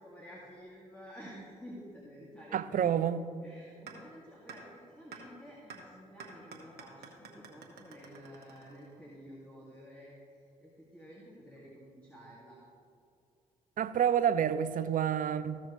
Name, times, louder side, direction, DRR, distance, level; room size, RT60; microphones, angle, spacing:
voice 1, 0.0-3.0 3.4-12.6, equal, 5° left, 2.2 m, -51 dB
voice 2, 2.5-3.2 13.8-15.6, right 9 dB, 50° right, 0.5 m, -28 dB
sound 1, 3.9-4.0 4.5-4.6 5.1-5.2 5.7-5.8 6.2-9.1, right 6 dB, 70° right, 1.4 m, -49 dB
15.0 x 6.0 x 3.1 m
hypercardioid pair, 50°, 17 cm